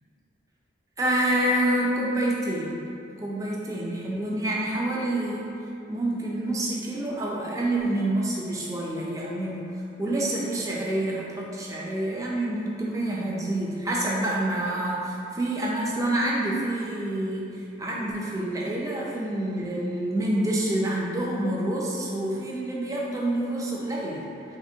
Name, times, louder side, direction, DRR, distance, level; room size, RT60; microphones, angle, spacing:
voice 1, 1.0-2.8 3.1-5.4 5.9-9.6 10.0-24.2, right 1 dB, 20° right, -3 dB, 0.3 m, -27 dB
3.5 x 2.5 x 2.6 m, 2.7 s
head